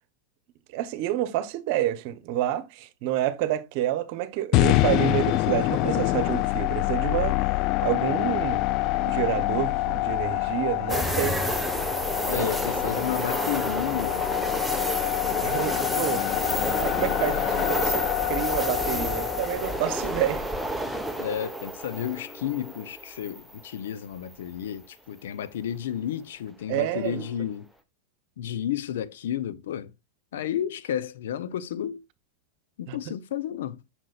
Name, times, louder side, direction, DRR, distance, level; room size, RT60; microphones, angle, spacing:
voice 1, 0.7-7.5 7.8-11.4 12.3-12.5 12.9-13.1 15.4-16.2 16.8-20.5 26.7-27.3 32.9-33.0, right 13 dB, 55° right, 1.0 m, -29 dB
sound 1, 4.5-20.7, left 18 dB, 50° left, 0.3 m, -26 dB
sound 2, 10.9-23.9 24.3-24.4 26.9-27.3, right 1 dB, ahead, 1.1 m, -30 dB
voice 2, 12.3-14.3 21.2-27.7 28.4-29.9 30.3-32.0 32.8-33.8, left 10 dB, 75° left, 0.7 m, -32 dB
7.7 x 6.2 x 2.4 m
hypercardioid pair, 105°, 0 cm